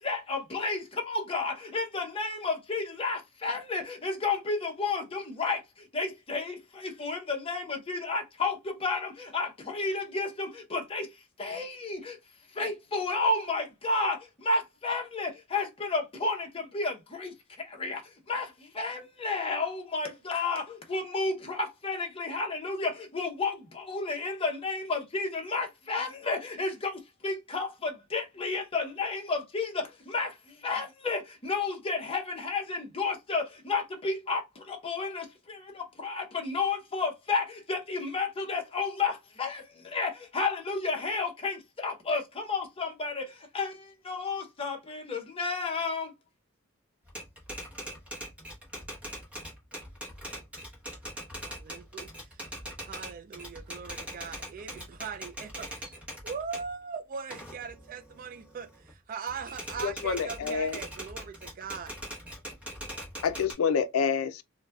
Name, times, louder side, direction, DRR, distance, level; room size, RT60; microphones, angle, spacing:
voice 1, 0.0-12.2 12.5-46.1, left 3 dB, 25° left, 0.7 m, -32 dB
Typewriter, 47.1-56.7 57.1-58.9 59.3-63.5, equal, 5° right, 0.9 m, -42 dB
voice 2, 51.4-52.1 52.9-55.8 56.2-61.9, right 6 dB, 40° right, 0.3 m, -40 dB
voice 3, 59.8-60.8 63.2-64.4, left 6 dB, 90° left, 0.4 m, -28 dB
3.9 x 2.1 x 2.2 m
head